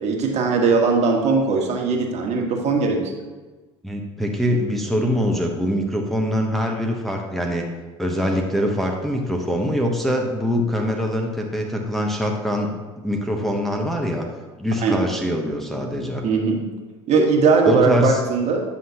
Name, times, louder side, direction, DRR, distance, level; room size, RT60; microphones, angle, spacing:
voice 1, 0.0-3.0 14.8-15.0 16.2-16.6 17.1-18.6, right 4 dB, 45° right, 1 dB, 1.4 m, -19 dB
voice 2, 3.8-7.6 8.0-12.8 13.0-14.3 14.6-16.2 17.7-18.2, equal, ahead, 0 dB, 0.9 m, -23 dB
9.2 x 5.7 x 2.8 m, 1.3 s
hypercardioid pair, 80°, 15 cm